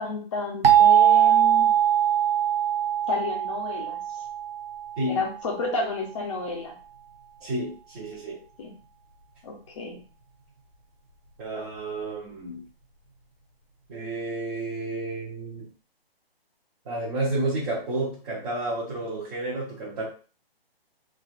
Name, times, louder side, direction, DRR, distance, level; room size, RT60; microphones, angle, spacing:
voice 1, 0.0-1.7 3.1-4.0 5.1-6.7 8.6-8.7 9.4-10.0, left 3 dB, 30° left, 0 dB, 0.9 m, -31 dB
sound 1, 0.6-5.3, right 10 dB, 70° right, 0.7 m, -21 dB
voice 2, 7.4-8.4 11.4-12.6 13.9-15.7 16.8-20.0, right 2 dB, 20° right, -9 dB, 0.9 m, -31 dB
3.3 x 2.5 x 2.5 m, 0.37 s
hypercardioid pair, 150°, 31 cm